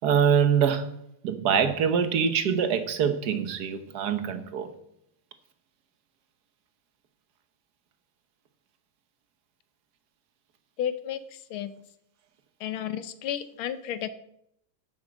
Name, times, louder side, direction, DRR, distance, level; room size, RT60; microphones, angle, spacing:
voice 1, 0.0-0.9 1.2-4.7, right 7 dB, 55° right, 1.4 m, -24 dB
voice 2, 10.8-11.7 12.6-14.1, left 10 dB, 80° left, 1.6 m, -32 dB
10.0 x 7.4 x 6.2 m
omnidirectional pair, 2.3 m